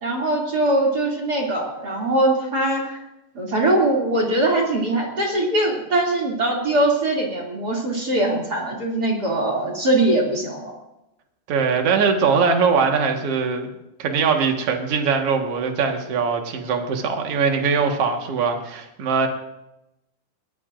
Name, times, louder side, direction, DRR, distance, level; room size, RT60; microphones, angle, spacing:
voice 1, 0.0-3.0 3.3-10.7, right 1 dB, 25° right, 0 dB, 2.6 m, -21 dB
voice 2, 11.5-13.7 14.0-19.3, right 5 dB, 55° right, 3 dB, 1.7 m, -21 dB
22.0 x 17.5 x 2.6 m, 0.89 s
omnidirectional pair, 5.1 m